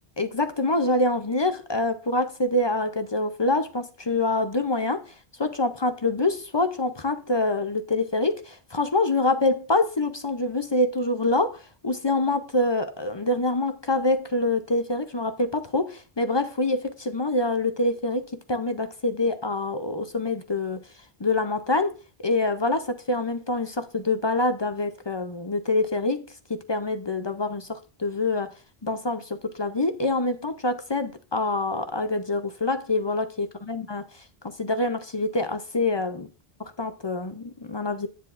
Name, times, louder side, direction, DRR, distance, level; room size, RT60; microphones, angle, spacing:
voice 1, 0.2-5.1 5.4-18.2 18.5-20.8 21.2-26.2 26.5-28.5 28.8-34.1 34.4-36.3 36.8-38.1, left 2 dB, 35° left, 0.5 m, -26 dB
9.8 x 9.3 x 2.5 m
omnidirectional pair, 1.0 m